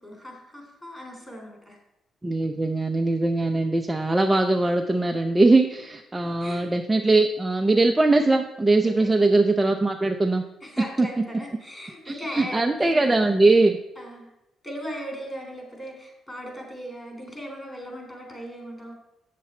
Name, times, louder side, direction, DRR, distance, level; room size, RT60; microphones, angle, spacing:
voice 1, 0.0-1.8 6.2-6.7 8.8-9.3 10.6-13.2 14.0-14.3 14.6-19.0, equal, 15° left, 0 dB, 3.2 m, -38 dB
voice 2, 2.2-10.4 11.0-11.1 12.1-13.8, right 2 dB, 15° right, 4 dB, 0.6 m, -21 dB
8.4 x 6.8 x 4.3 m, 0.89 s
cardioid pair, 90°, 0 cm